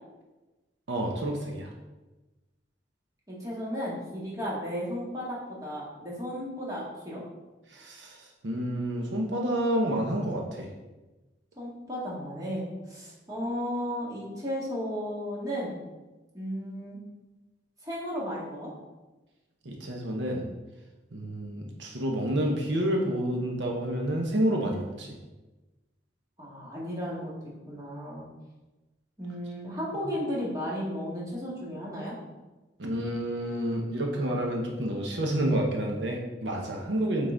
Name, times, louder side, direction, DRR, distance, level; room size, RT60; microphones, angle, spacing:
voice 1, 0.9-1.7 7.7-8.2 8.4-10.7 19.6-20.4 21.1-25.1 32.8-37.3, right 1 dB, 85° right, 1 dB, 0.9 m, -29 dB
voice 2, 3.3-7.2 11.6-15.8 16.3-17.0 17.8-18.7 26.4-28.2 29.2-32.2, equal, 20° right, -6 dB, 1.7 m, -34 dB
7.9 x 3.8 x 3.8 m, 1.1 s
head